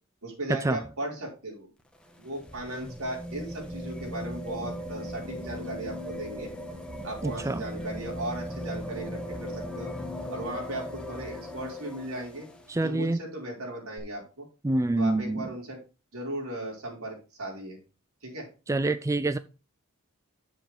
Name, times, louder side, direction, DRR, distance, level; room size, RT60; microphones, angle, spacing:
voice 1, 0.2-1.7 2.2-6.5 7.0-9.9 10.3-12.5 12.8-14.5 15.0-15.8 16.1-17.8 18.2-18.5, right 1 dB, 80° right, 4.7 m, -37 dB
sound 1, 1.8-12.8 14.0-14.1, equal, 5° left, 1.2 m, -38 dB
voice 2, 7.2-7.6 12.7-13.2 14.6-15.4 18.7-19.4, right 2 dB, 15° right, 0.4 m, -26 dB
9.1 x 7.6 x 3.6 m
head